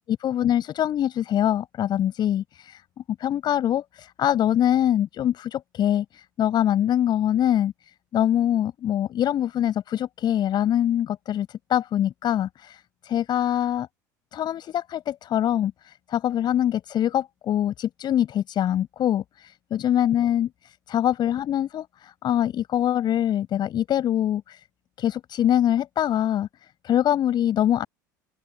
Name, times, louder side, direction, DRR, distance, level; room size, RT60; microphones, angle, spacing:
voice 1, 0.1-2.8 3.2-7.7 8.1-13.9 14.3-24.6 25.0-26.5 26.8-27.8, left 11 dB, 45° left, 5.4 m, -24 dB
open air
hypercardioid pair, 75°, 10 cm